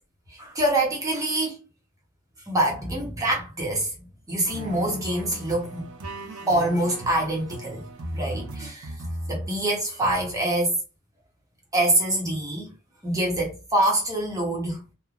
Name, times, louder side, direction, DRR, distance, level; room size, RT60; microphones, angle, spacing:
voice 1, 0.4-1.6 2.5-3.9 4.3-5.9 6.5-7.8 8.1-8.9 9.3-10.7 11.7-12.7 13.0-14.8, right 1 dB, 15° right, 0.8 m, -25 dB
sound 1, 4.4-9.6 10.0-10.4, right 1 dB, 80° right, 0.7 m, -36 dB
3.1 x 2.1 x 2.4 m
head